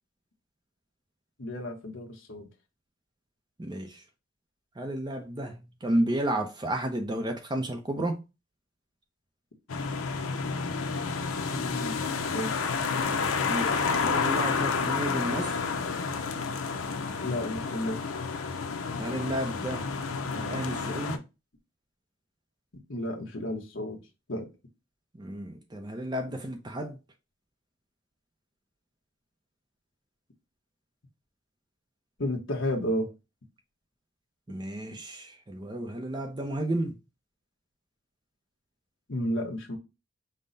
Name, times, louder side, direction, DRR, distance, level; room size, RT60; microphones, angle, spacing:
voice 1, 1.4-2.5 11.5-11.9 12.3-12.5 17.2-18.0 22.9-24.0 24.3-24.5 32.2-33.1 39.1-39.8, left 1 dB, 65° left, 1.0 m, -32 dB
voice 2, 3.6-4.0 4.8-8.2 13.4-15.6 18.9-19.9 20.3-21.2 25.1-27.0 34.5-37.0, right 1 dB, 20° right, 0.5 m, -32 dB
sound 1, 9.7-21.2, left 5 dB, 90° left, 0.7 m, -30 dB
5.4 x 2.1 x 3.9 m
head